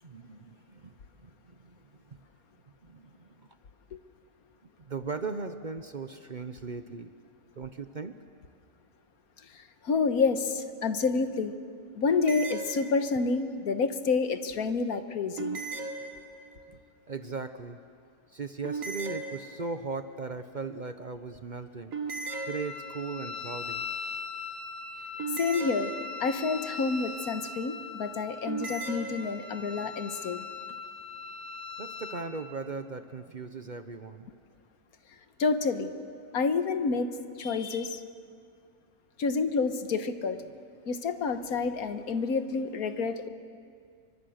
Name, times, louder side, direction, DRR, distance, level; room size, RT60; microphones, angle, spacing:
voice 1, 0.0-2.2 2.8-3.5 4.8-7.1 7.6-8.2 17.1-17.8 18.3-22.0 22.4-23.9 29.6-29.7 31.8-34.3, right 4 dB, 40° right, 9 dB, 0.8 m, -38 dB
voice 2, 9.5-11.5 11.9-15.6 25.4-25.9 26.2-30.4 35.4-35.9 36.3-37.1 37.4-38.0 39.2-40.4 40.9-43.3, left 4 dB, 85° left, 9 dB, 1.7 m, -28 dB
sound 1, 12.1-13.4 15.4-16.7 18.6-19.9 21.9-23.2 25.2-26.5 28.5-29.4, right 4 dB, 65° right, 1.9 m, -37 dB
Wind instrument woodwind instrument, 22.3-32.2, left 4 dB, 60° left, 1.9 m, -40 dB
29.5 x 24.0 x 6.5 m, 2.3 s
omnidirectional pair, 1.5 m